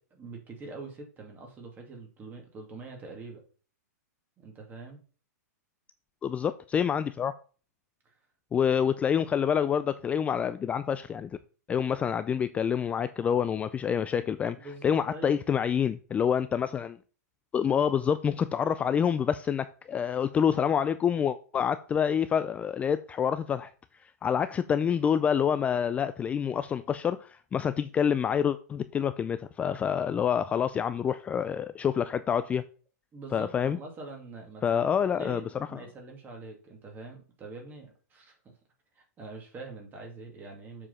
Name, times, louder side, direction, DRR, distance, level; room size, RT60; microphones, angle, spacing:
voice 1, 0.1-3.4 4.4-5.0 14.6-15.4 33.1-38.3 39.0-40.9, right 3 dB, 20° right, 2.3 m, -44 dB
voice 2, 6.2-7.3 8.5-11.3 11.7-14.6 14.8-17.0 17.5-23.7 24.2-32.6 33.3-33.8 34.6-35.4 35.7-35.8, left 8 dB, 15° left, 0.3 m, -27 dB
7.4 x 4.9 x 5.6 m
hypercardioid pair, 135°, 9 cm